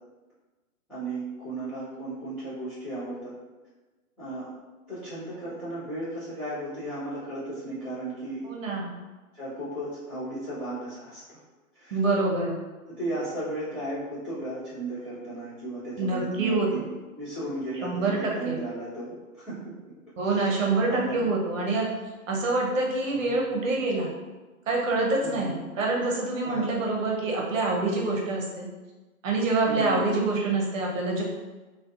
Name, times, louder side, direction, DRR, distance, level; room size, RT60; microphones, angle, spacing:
voice 1, 0.9-3.3 4.2-4.5 4.9-8.4 9.3-11.4 11.7-12.0 12.9-16.8 17.2-17.9 18.2-19.6 20.3-21.3 23.1-23.4 25.2-25.6 26.4-26.6 29.7-30.0, right 2 dB, 5° left, -20 dB, 0.4 m, -35 dB
voice 2, 8.4-8.9 11.9-12.6 16.0-16.9 17.8-18.6 20.2-21.9 22.3-24.1 24.7-28.7 29.2-31.2, right 3 dB, 60° right, -2 dB, 0.8 m, -26 dB
2.4 x 2.3 x 2.5 m, 1.2 s
figure-of-eight pair, 110°, 43 cm